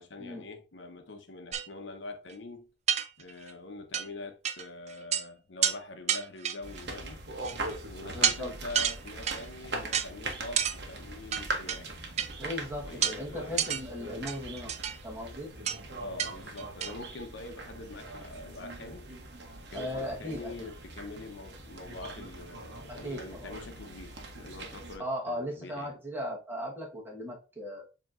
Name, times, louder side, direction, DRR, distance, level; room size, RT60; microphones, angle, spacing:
voice 1, 0.0-2.7 3.2-7.2 7.9-11.9 12.8-13.7 16.0-19.1 19.7-26.0, left 2 dB, 75° left, 0.8 m, -44 dB
sound 1, 1.5-1.7 2.3-2.4 2.9-3.5 3.9-4.1 4.4-4.6 4.9-5.2 5.6-5.8 6.1-6.8 7.4-7.7 8.2-8.4 8.7-9.5 9.9-10.1 10.6-10.8 11.3-11.8 12.2-12.3 13.0-13.2 13.6-13.8 14.3-15.0 15.7-15.8 16.2-16.3 16.6-17.0, right 9 dB, 35° right, 0.3 m, -29 dB
sound 2, 6.6-25.0, right 2 dB, 60° right, 1.0 m, -42 dB
voice 2, 8.1-8.5 12.4-14.8 15.0-15.5 19.7-20.7 22.9-23.5 25.0-27.8, equal, 10° right, 1.2 m, -37 dB
7.3 x 2.9 x 2.5 m
head